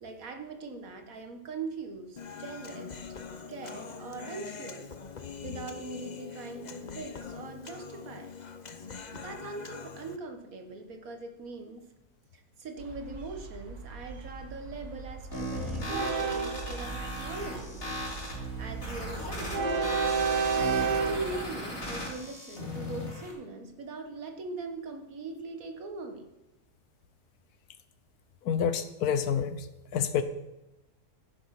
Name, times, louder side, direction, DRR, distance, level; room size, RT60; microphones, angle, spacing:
voice 1, 0.0-2.9 3.5-4.9 5.4-8.3 9.1-11.8 12.3-18.0 18.3-19.8 20.6-26.3, right 3 dB, 65° right, 6 dB, 1.9 m, -41 dB
Human voice, 2.2-10.2, left 5 dB, 35° left, 0.7 m, -43 dB
Train, 12.8-21.4, right 5 dB, 90° right, 1.9 m, -33 dB
sound 1, 15.3-23.3, left 1 dB, 60° left, 3.4 m, -37 dB
voice 2, 28.4-29.7 29.9-30.2, left 8 dB, 80° left, 11 dB, 1.3 m, -28 dB
15.0 x 6.9 x 5.9 m, 0.98 s
omnidirectional pair, 1.6 m